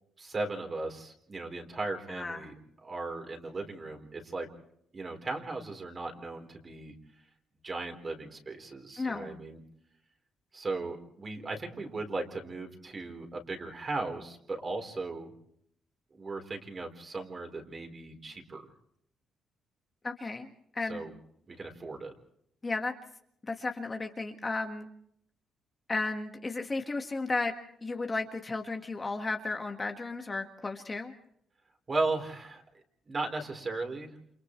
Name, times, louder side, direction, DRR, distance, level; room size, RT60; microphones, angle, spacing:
voice 1, 0.2-2.5 2.8-4.5 4.9-6.9 7.6-9.6 10.5-15.3 16.1-18.7 20.9-21.1 21.5-22.1 31.9-32.6 33.1-34.2, right 3 dB, 35° right, 3 dB, 4.1 m, -37 dB
voice 2, 2.1-2.5 9.0-9.4 20.0-20.5 20.7-21.0 22.6-22.9 23.4-24.9 25.9-27.5 27.8-31.1, left 3 dB, 25° left, 4 dB, 1.7 m, -34 dB
29.0 x 28.0 x 3.2 m, 0.71 s
cardioid pair, 90°, 0 cm